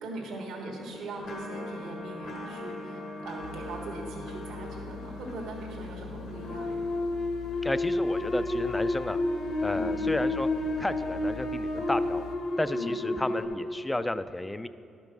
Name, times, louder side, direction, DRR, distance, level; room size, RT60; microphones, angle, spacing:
voice 1, 0.0-6.9 9.7-10.0 12.7-13.2, right 2 dB, 85° right, -1 dB, 1.5 m, -40 dB
sound 1, 0.8-13.5, left 2 dB, 60° left, 1.2 m, -32 dB
sound 2, 3.4-12.4, left 6 dB, 90° left, 0.5 m, -44 dB
voice 2, 7.6-9.2 9.6-10.5 10.8-12.2 12.6-14.7, left 1 dB, 15° left, 13 dB, 0.3 m, -32 dB
11.5 x 5.3 x 6.2 m, 2.7 s
cardioid pair, 90°, 0 cm